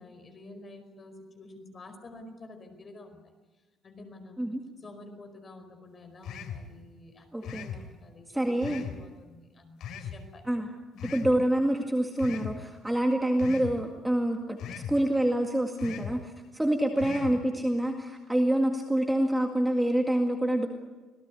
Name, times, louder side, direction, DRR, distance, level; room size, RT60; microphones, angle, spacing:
voice 1, 0.0-3.3 3.8-4.5 4.8-10.4 10.9-11.2 16.9-17.1, left 2 dB, 25° left, 6 dB, 5.0 m, -49 dB
sound 1, 6.2-6.7 7.4-7.8 8.6-9.0 9.8-10.2 11.0-11.3 12.2-12.6 13.4-13.8 14.6-15.0 15.8-16.2 17.0-17.4, left 8 dB, 70° left, 3.2 m, -38 dB
voice 2, 7.3-7.7 8.3-8.8 10.5-10.7 11.1-14.6 14.9-20.7, right 1 dB, 5° right, 2 dB, 2.0 m, -26 dB
27.0 x 18.0 x 9.8 m, 1.3 s
cardioid pair, 155°, 0 cm